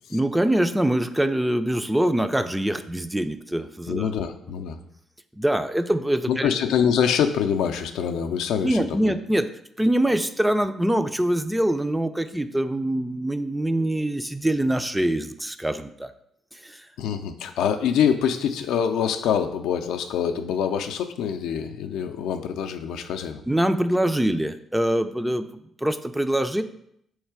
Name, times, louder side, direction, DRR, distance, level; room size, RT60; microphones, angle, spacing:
voice 1, 0.1-4.1 5.4-6.5 8.6-9.5 9.8-16.1 16.5-16.9 23.5-25.5 25.8-26.6, right 1 dB, 10° right, 10 dB, 0.3 m, -24 dB
voice 2, 3.9-4.8 6.3-9.1 17.0-23.4, left 8 dB, 85° left, 6 dB, 0.4 m, -25 dB
3.6 x 3.2 x 4.6 m, 0.72 s
cardioid pair, 90°, 0 cm